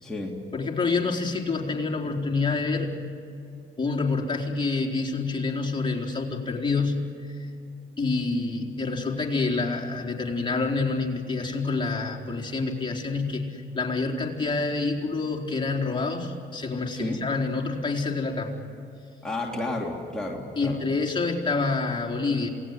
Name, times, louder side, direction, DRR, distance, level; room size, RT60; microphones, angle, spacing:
voice 1, 0.0-0.4 16.9-17.2 19.2-20.8, left 2 dB, 5° left, -3 dB, 3.0 m, -31 dB
voice 2, 0.5-2.9 3.8-7.5 8.0-18.5 20.6-22.5, left 3 dB, 25° left, -1 dB, 4.0 m, -27 dB
28.0 x 19.0 x 9.8 m, 2.6 s
cardioid pair, 90°, 20 cm